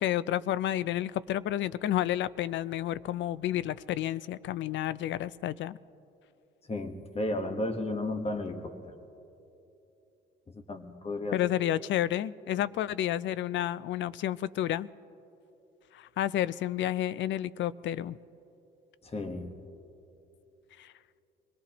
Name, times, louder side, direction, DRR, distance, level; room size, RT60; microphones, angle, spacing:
voice 1, 0.0-5.8 11.3-14.9 15.9-18.2 20.8-20.9, left 12 dB, 70° left, 18 dB, 0.4 m, -30 dB
voice 2, 6.7-9.0 10.5-11.4 12.5-12.6 19.0-19.5, left 2 dB, 30° left, 6 dB, 1.4 m, -34 dB
24.0 x 19.0 x 3.0 m, 2.9 s
cardioid pair, 90°, 20 cm